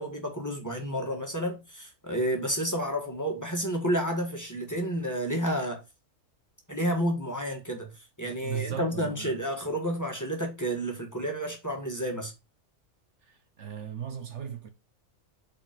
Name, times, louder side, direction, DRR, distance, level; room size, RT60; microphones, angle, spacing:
voice 1, 0.0-5.8 6.7-7.9 8.2-12.3, equal, 15° left, 1.5 m, -30 dB
voice 2, 8.4-9.4 13.2-14.7, right 9 dB, 60° right, 1.1 m, -37 dB
5.2 x 4.3 x 5.2 m
omnidirectional pair, 1.4 m